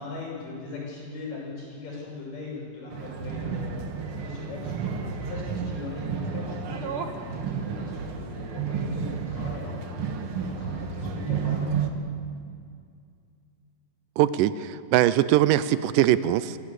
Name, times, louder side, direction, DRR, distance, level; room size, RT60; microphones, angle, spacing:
voice 1, 0.0-11.8, left 3 dB, 70° left, -3 dB, 7.8 m, -40 dB
sound 1, 2.9-11.9, right 6 dB, 50° right, 1.8 m, -31 dB
voice 2, 14.2-16.6, right 13 dB, 75° right, 15 dB, 2.1 m, -21 dB
26.5 x 15.5 x 8.2 m, 2.3 s
omnidirectional pair, 4.1 m